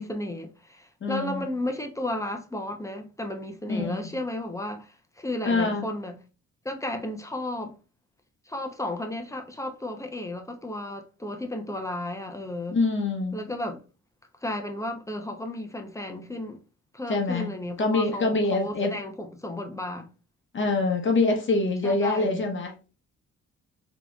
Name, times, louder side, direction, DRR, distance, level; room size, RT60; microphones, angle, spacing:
voice 1, 0.0-6.2 6.6-7.8 8.5-12.8 13.3-13.8 14.4-16.6 16.9-20.1 21.8-22.5, left 1 dB, 10° left, 0.6 m, -33 dB
voice 2, 1.0-1.4 3.7-4.0 5.4-5.8 12.7-13.4 17.1-17.5 17.8-19.0 20.5-22.9, left 3 dB, 40° left, 0.9 m, -25 dB
3.9 x 2.9 x 2.3 m
cardioid pair, 90°, 30 cm